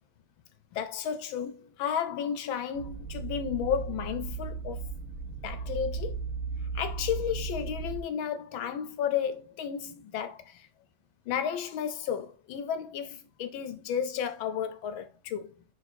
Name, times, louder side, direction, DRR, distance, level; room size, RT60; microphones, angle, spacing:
voice 1, 0.7-4.8 5.4-6.2 6.7-10.7 11.3-15.6, left 8 dB, 70° left, 1.4 m, -33 dB
sound 1, 2.7-8.0, right 5 dB, 50° right, 1.5 m, -36 dB
5.3 x 4.9 x 4.3 m
omnidirectional pair, 2.4 m